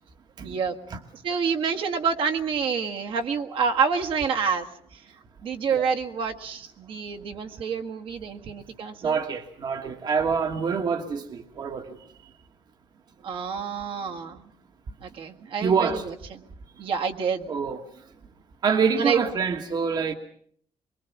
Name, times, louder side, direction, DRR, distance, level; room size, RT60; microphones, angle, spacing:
voice 1, 0.4-0.8 1.1-4.7 4.9-5.0 5.4-9.2 13.2-14.5 15.0-16.4 16.8-17.5 19.0-19.2, right 6 dB, 65° right, 3 dB, 1.7 m, -28 dB
voice 2, 9.0-12.0 15.6-16.0 17.5-17.8 18.6-20.1, right 5 dB, 45° right, 6 dB, 1.4 m, -26 dB
23.5 x 22.0 x 7.2 m, 0.62 s
cardioid pair, 140°, 10 cm